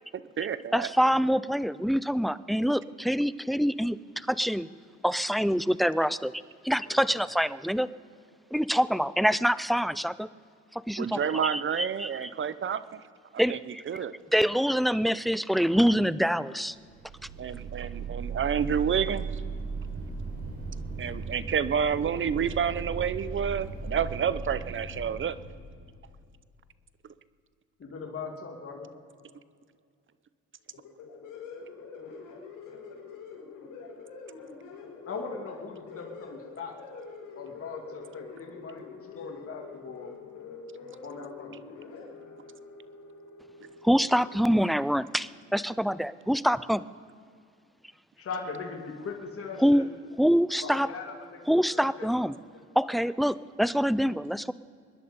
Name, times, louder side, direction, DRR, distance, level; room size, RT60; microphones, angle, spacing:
voice 1, 0.1-0.9 11.0-13.0 13.5-13.6 13.9-14.1 17.4-19.3 21.0-25.4, right 7 dB, 40° right, 15 dB, 0.7 m, -29 dB
voice 2, 0.7-4.7 5.0-6.3 6.6-7.9 8.5-10.3 10.7-12.3 13.4-13.8 14.3-16.8 43.8-46.8 49.6-49.9 50.2-50.9 51.5-52.3 52.8-54.5, equal, ahead, 18 dB, 0.4 m, -25 dB
sound 1, 16.8-26.1, right 4 dB, 70° right, 4.9 m, -37 dB
voice 3, 27.8-28.9 35.1-36.7 37.4-40.1 41.0-41.6 48.2-49.8 50.6-51.4 51.7-52.2 52.5-52.9, left 4 dB, 50° left, 1 dB, 2.7 m, -40 dB
sound 2, 30.7-44.5, left 5 dB, 85° left, 4.8 m, -45 dB
24.5 x 10.5 x 5.4 m, 2.3 s
cardioid pair, 90°, 30 cm